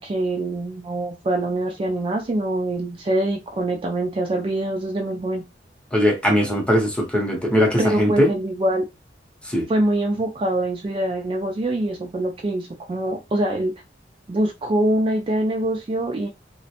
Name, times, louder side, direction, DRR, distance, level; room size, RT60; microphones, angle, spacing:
voice 1, 0.0-5.4 7.8-8.9 9.7-13.7 14.3-16.3, right 1 dB, 30° right, 0.3 m, -24 dB
voice 2, 5.9-8.3 9.5-9.7, equal, 5° left, 0.6 m, -20 dB
2.4 x 2.0 x 2.8 m
head